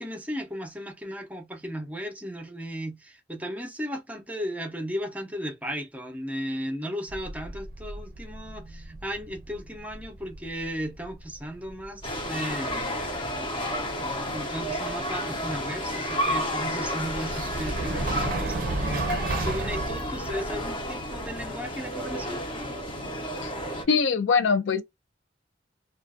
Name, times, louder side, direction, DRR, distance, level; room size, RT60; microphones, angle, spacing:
voice 1, 0.0-13.0 14.0-22.4, equal, 10° right, 0.7 m, -35 dB
sound 1, 7.1-21.5, right 3 dB, 50° right, 0.5 m, -36 dB
sound 2, 12.0-23.8, equal, 30° left, 0.8 m, -31 dB
voice 2, 23.9-24.8, left 5 dB, 75° left, 0.4 m, -22 dB
2.5 x 2.3 x 2.4 m
head